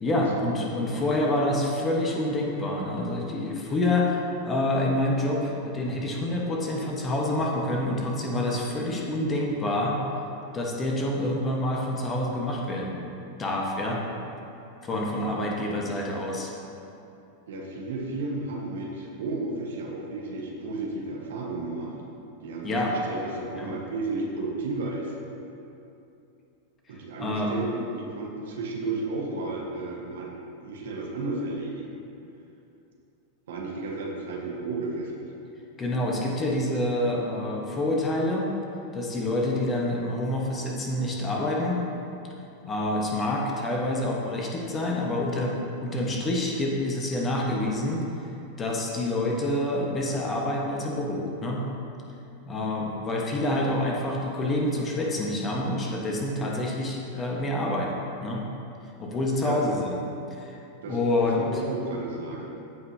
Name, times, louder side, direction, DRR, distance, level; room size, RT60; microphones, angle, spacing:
voice 1, 0.0-10.0 10.5-13.1 13.4-14.1 14.8-16.5 22.6-22.9 23.5-23.7 27.2-27.6 35.8-38.5 38.9-41.8 42.6-48.0 48.6-51.7 52.4-58.5 59.0-60.0 60.3-60.6 60.8-61.4, left 1 dB, 20° left, -1 dB, 1.3 m, -27 dB
voice 2, 0.7-1.1 15.3-15.5 17.5-21.9 22.4-25.1 26.9-30.3 30.6-32.0 33.5-35.2 59.4-59.7 60.8-61.0 61.4-62.5, right 2 dB, 60° right, -2 dB, 1.4 m, -33 dB
15.5 x 5.5 x 2.8 m, 2.7 s
figure-of-eight pair, 90°, 0 cm